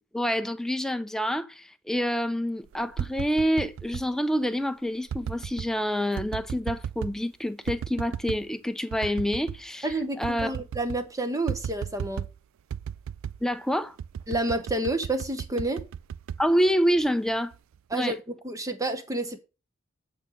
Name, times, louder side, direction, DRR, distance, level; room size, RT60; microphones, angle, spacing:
voice 1, 0.1-10.5 13.4-14.0 16.4-17.5 17.9-18.2, equal, ahead, 0.4 m, -27 dB
sound 1, 2.7-4.1 5.1-5.7 6.2-7.2 7.7-8.4 8.9-9.6 9.9-10.0 10.2-11.1 11.5-12.4 12.7-13.4 14.0-17.1 17.5-17.9, right 8 dB, 70° right, 0.3 m, -35 dB
voice 2, 9.8-12.2 14.3-15.8 17.9-18.2 18.4-19.4, right 2 dB, 15° right, 0.8 m, -29 dB
8.5 x 3.8 x 6.0 m
head